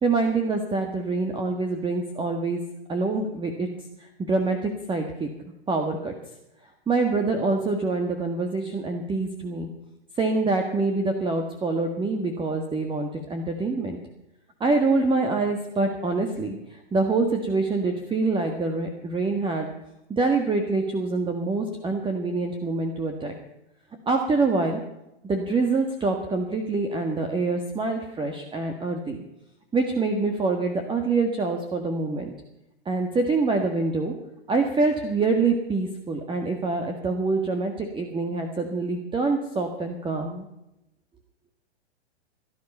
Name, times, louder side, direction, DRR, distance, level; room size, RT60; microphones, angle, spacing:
voice 1, 0.0-2.6 2.9-3.7 4.0-5.3 5.7-6.1 6.9-9.7 10.2-14.0 14.6-19.7 20.1-23.3 24.1-24.8 25.2-29.2 29.7-32.3 32.9-34.1 34.5-40.5, right 3 dB, 15° right, 4 dB, 1.7 m, -25 dB
18.0 x 12.0 x 5.5 m, 0.88 s
hypercardioid pair, 115°, 34 cm